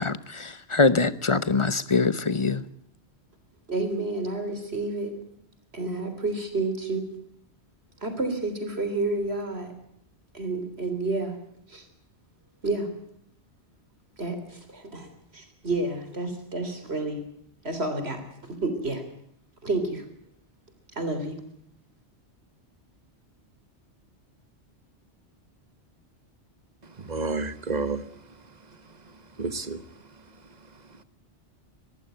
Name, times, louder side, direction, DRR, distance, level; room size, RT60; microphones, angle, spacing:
voice 1, 0.0-2.6, left 3 dB, 30° left, 0.9 m, -23 dB
voice 2, 3.7-5.1 5.7-7.0 8.0-9.7 10.3-11.4 11.7-11.8 12.6-12.9 14.2-17.2 17.6-19.0 19.6-20.0 20.9-21.4, right 2 dB, 65° right, 3.9 m, -30 dB
voice 3, 27.0-28.0 29.4-29.8, right 3 dB, 40° right, 1.4 m, -29 dB
21.5 x 15.0 x 9.1 m
omnidirectional pair, 1.1 m